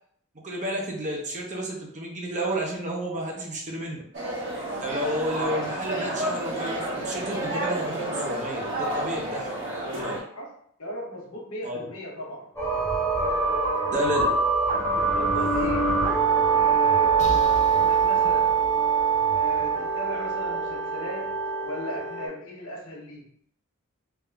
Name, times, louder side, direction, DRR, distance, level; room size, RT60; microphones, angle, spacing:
voice 1, 0.4-4.0 4.8-9.5 10.0-10.1 11.6-11.8 13.9-14.3, equal, 35° right, -1 dB, 0.9 m, -31 dB
sound 1, 4.1-10.2, right 1 dB, 60° right, 1.4 m, -30 dB
voice 2, 10.8-12.5 13.1-14.0 14.3-14.4 14.9-15.9 16.5-18.6 19.3-23.3, equal, 70° left, -3 dB, 1.3 m, -36 dB
sound 2, 12.6-22.3, right 5 dB, 15° left, 0.9 m, -23 dB
sound 3, 17.2-20.9, left 1 dB, 35° left, 0.5 m, -41 dB
3.5 x 2.7 x 3.4 m, 0.66 s
head